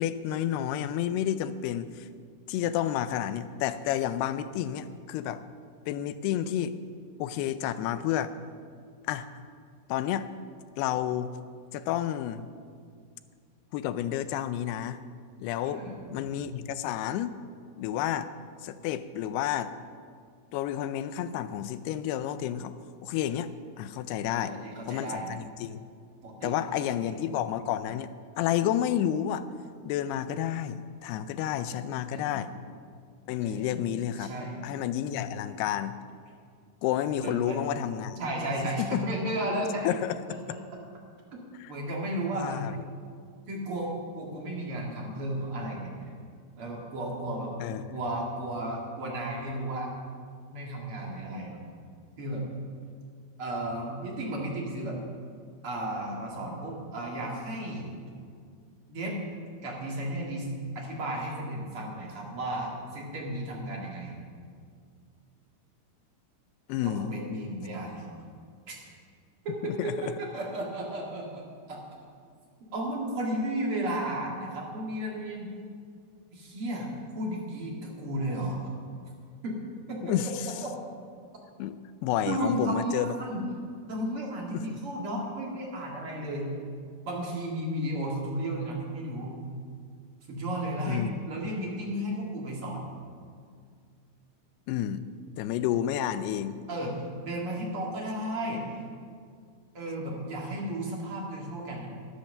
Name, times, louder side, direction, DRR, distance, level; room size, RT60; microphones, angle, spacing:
voice 1, 0.0-2.1 2.5-5.4 5.9-6.8 7.2-8.3 9.1-9.3 9.9-10.3 10.8-11.3 11.7-12.5 13.7-15.0 15.4-15.8 16.1-17.3 17.8-18.3 18.6-19.7 20.5-22.7 23.0-23.5 23.8-24.6 24.8-25.8 26.4-28.1 28.4-29.5 29.8-32.5 33.3-34.3 34.6-36.0 36.8-38.2 38.8-39.0 39.8-40.2 41.6-41.7 42.3-42.7 47.6-47.9 66.7-67.1 69.6-69.9 80.0-80.5 81.6-81.8 82.0-83.1 84.5-84.8 90.9-91.1 94.7-95.1 95.4-96.6, left 11 dB, 85° left, 12 dB, 2.6 m, -30 dB
voice 2, 15.6-16.0 24.3-25.3 26.2-27.1 32.1-32.5 33.4-33.9 34.2-34.6 37.1-37.6 38.2-39.9 41.3-41.4 41.7-42.7 43.5-43.9 44.2-45.9 46.6-47.5 47.9-49.9 50.5-51.6 52.2-52.4 53.4-55.0 55.6-57.9 58.9-59.2 59.6-64.1 66.8-68.1 68.7-68.8 69.4-71.4 71.7-71.8 72.7-75.5 76.3-76.9 77.1-78.6 79.4-79.5 79.9-80.1 80.6-80.7 82.3-83.4 83.9-86.5 87.0-89.4 90.3-92.9 96.7-98.8 99.7-101.9, right 1 dB, 40° right, -2 dB, 2.3 m, -34 dB
11.5 x 11.5 x 6.6 m, 2.1 s
omnidirectional pair, 4.7 m